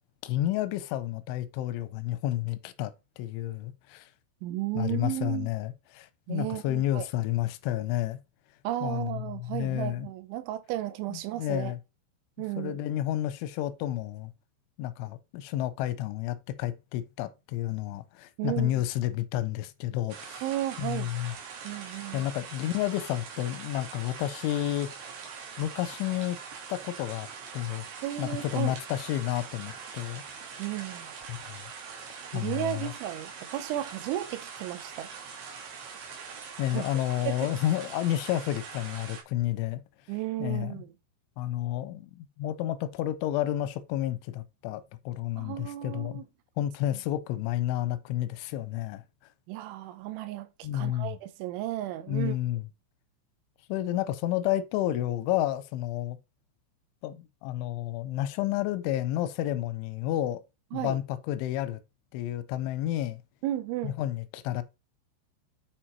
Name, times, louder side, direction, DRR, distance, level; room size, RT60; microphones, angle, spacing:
voice 1, 0.2-4.1 4.8-8.2 8.8-10.1 11.1-11.8 12.6-14.3 14.8-20.4 20.8-21.3 21.9-24.9 25.6-26.4 26.7-27.3 27.5-27.8 28.2-30.2 31.3-31.6 32.3-32.9 36.6-39.8 40.4-40.7 41.4-46.2 46.6-49.0 50.6-51.2 52.1-52.6 53.7-56.2 57.0-60.4 60.7-61.8 62.1-63.2 63.8-64.6, left 13 dB, 90° left, 3.1 m, -31 dB
voice 2, 4.4-5.5 6.3-7.1 8.6-11.7 12.4-12.8 18.4-18.8 20.4-21.1 21.6-22.3 28.0-28.8 30.6-31.1 32.3-35.1 36.7-36.8 37.2-37.5 40.1-40.9 45.4-46.3 46.9-47.0 49.5-52.4 60.7-61.0 63.4-63.9, right 14 dB, 85° right, 3.2 m, -34 dB
sound 1, 20.1-39.2, right 6 dB, 70° right, 4.7 m, -43 dB
10.0 x 4.6 x 4.5 m
omnidirectional pair, 5.5 m